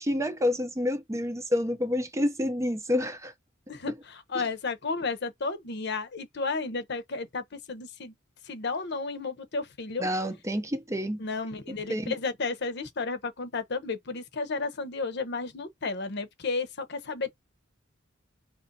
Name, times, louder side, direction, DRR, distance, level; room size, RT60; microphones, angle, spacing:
voice 1, 0.0-3.3 10.0-11.2 11.9-12.1, left 1 dB, 15° right, 0.6 m, -28 dB
voice 2, 3.7-8.1 8.5-10.1 11.2-17.3, left 4 dB, 60° left, 0.9 m, -33 dB
5.3 x 3.1 x 2.7 m
head